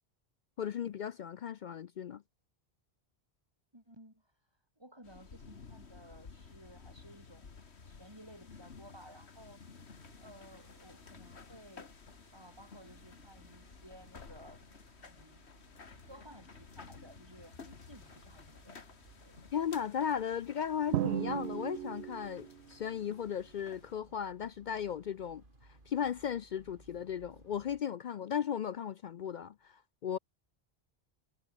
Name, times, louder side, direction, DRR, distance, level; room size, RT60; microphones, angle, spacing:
voice 1, 0.6-2.2 19.5-25.4 25.9-30.2, left 8 dB, 55° left, 0.6 m, -36 dB
voice 2, 3.7-4.3 4.8-7.6 7.9-9.6 10.2-11.9 12.3-14.6 15.0-15.4 16.0-19.0 19.2-19.4, right 1 dB, 25° right, 7.0 m, -56 dB
sound 1, 5.0-24.0, left 5 dB, 85° left, 2.0 m, -54 dB
sound 2, 9.8-27.8, right 2 dB, 50° right, 4.1 m, -63 dB
Drum, 20.9-22.6, right 12 dB, 90° right, 0.9 m, -35 dB
omnidirectional pair, 1.1 m